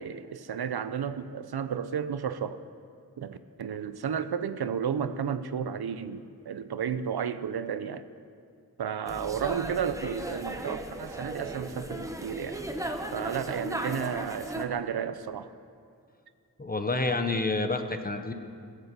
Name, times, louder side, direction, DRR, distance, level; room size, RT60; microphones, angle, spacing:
voice 1, 0.0-2.6 3.2-8.0 8.8-12.6 13.1-15.5, right 7 dB, 80° right, 12 dB, 0.6 m, -32 dB
sound 1, 9.1-14.7, right 1 dB, 10° right, 0.9 m, -36 dB
voice 2, 16.6-18.3, left 3 dB, 25° left, 7 dB, 0.9 m, -28 dB
16.0 x 8.4 x 6.8 m, 2.3 s
wide cardioid pair, 85°, 37 cm